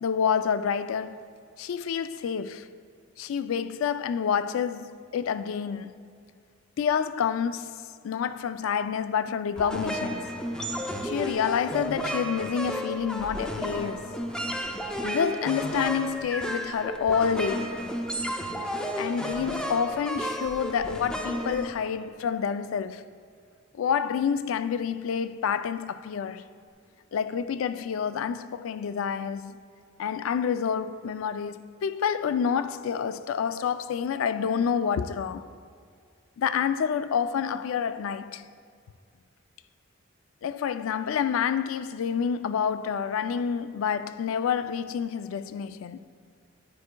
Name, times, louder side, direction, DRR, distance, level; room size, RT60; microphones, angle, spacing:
voice 1, 0.0-1.3 1.6-2.7 3.2-6.0 6.8-10.3 11.0-14.2 15.0-17.8 19.0-23.0 23.7-26.4 27.1-29.6 30.0-35.5 36.4-38.5 40.4-46.0, left 7 dB, 75° left, 0.3 m, -28 dB
sound 1, 9.6-22.3, equal, 5° left, 0.5 m, -32 dB
10.5 x 9.5 x 2.2 m
head